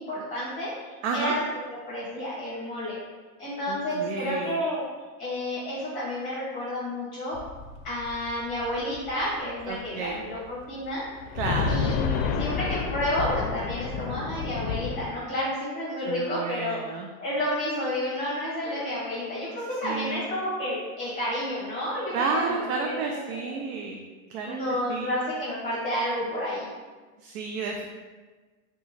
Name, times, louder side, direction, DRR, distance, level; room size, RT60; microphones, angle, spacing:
voice 1, 0.0-1.4 1.7-3.0 3.4-4.8 5.2-7.4 7.8-11.0 11.7-16.8 17.2-23.5 24.4-26.7, left 1 dB, 20° left, -7 dB, 0.9 m, -31 dB
voice 2, 1.0-1.4 3.6-4.6 9.7-10.1 11.3-11.8 16.0-17.1 19.8-20.2 22.1-24.0 24.3-25.1 27.2-27.9, right 4 dB, 70° right, 1 dB, 0.5 m, -31 dB
sound 1, 7.3-10.1 10.4-10.5 11.1-15.1, left 5 dB, 65° left, 0.5 m, -30 dB
2.8 x 2.3 x 4.0 m, 1.3 s
supercardioid pair, 125°, 45 cm